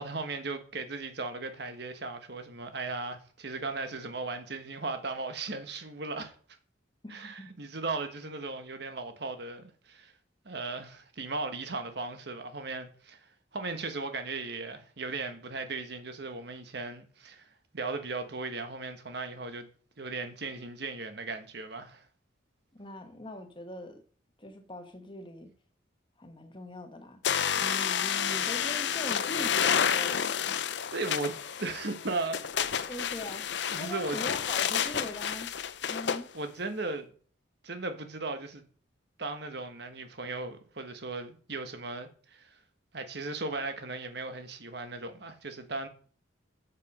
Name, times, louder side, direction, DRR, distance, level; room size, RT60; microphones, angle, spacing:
voice 1, 0.0-6.3 7.1-10.1 10.4-19.7 20.0-22.1 30.9-32.7 33.7-34.2 36.3-37.1 37.6-38.6 39.2-42.5 42.9-45.9, right 3 dB, 55° right, 1.3 m, -37 dB
voice 2, 7.0-7.5 22.8-24.0 24.4-25.5 26.2-27.2 27.5-30.6 32.9-33.5 33.8-35.5 35.9-36.3, left 1 dB, 25° left, 1.2 m, -41 dB
sound 1, 27.2-36.2, left 8 dB, 60° left, 0.6 m, -30 dB
7.1 x 6.7 x 5.3 m
head